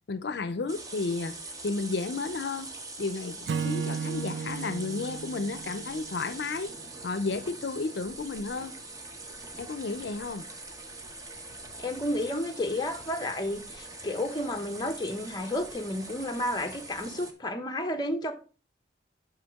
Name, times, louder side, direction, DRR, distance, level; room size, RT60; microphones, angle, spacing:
voice 1, 0.1-1.3 1.6-2.7 3.0-6.7 7.0-8.7 9.6-10.4, left 3 dB, 65° left, 0.5 m, -32 dB
sound 1, 0.7-17.3, right 2 dB, 20° right, 0.7 m, -43 dB
Acoustic guitar / Strum, 3.5-6.8, right 6 dB, 65° right, 0.3 m, -35 dB
voice 2, 11.8-18.3, left 1 dB, 20° left, 0.7 m, -31 dB
8.1 x 5.7 x 3.5 m
head